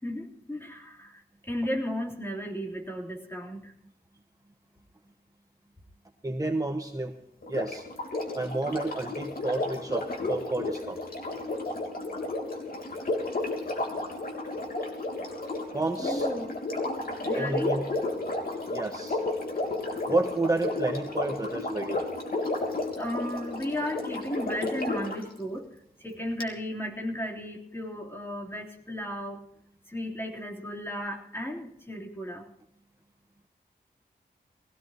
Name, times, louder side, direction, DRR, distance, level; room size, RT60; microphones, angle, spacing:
voice 1, 0.0-3.7 16.0-16.6 17.0-17.7 19.9-20.0 23.0-25.7 26.0-29.4 29.9-32.5, equal, 15° left, -1 dB, 3.5 m, -35 dB
voice 2, 6.2-7.1 7.5-7.8 8.4-11.0 15.7-16.3 17.3-17.9 18.7-19.2 20.1-22.1, right 2 dB, 20° right, 3 dB, 1.2 m, -30 dB
Sink (filling or washing), 7.4-25.2 26.4-26.5, left 2 dB, 65° left, 3.4 m, -32 dB
22.0 x 17.0 x 2.9 m, 0.74 s
wide cardioid pair, 115°, 17 cm